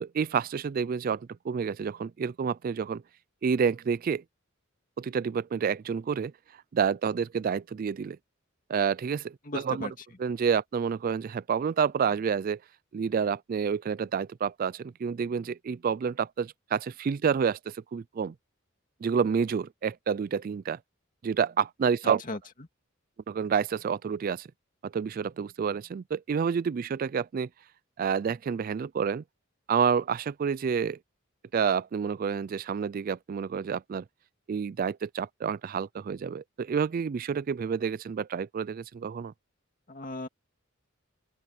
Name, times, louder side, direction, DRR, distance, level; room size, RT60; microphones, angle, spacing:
voice 1, 0.0-3.0 3.4-4.2 5.0-6.3 6.7-8.2 8.7-9.9 10.2-12.6 12.9-18.3 19.0-20.8 21.2-22.2 23.3-24.5 24.8-27.5 28.0-29.2 29.7-31.0 31.5-34.0 34.5-39.3, right 6 dB, 45° right, 0.3 m, -29 dB
voice 2, 9.4-9.9 22.0-22.4 39.9-40.3, left 2 dB, 40° left, 2.2 m, -36 dB
open air
head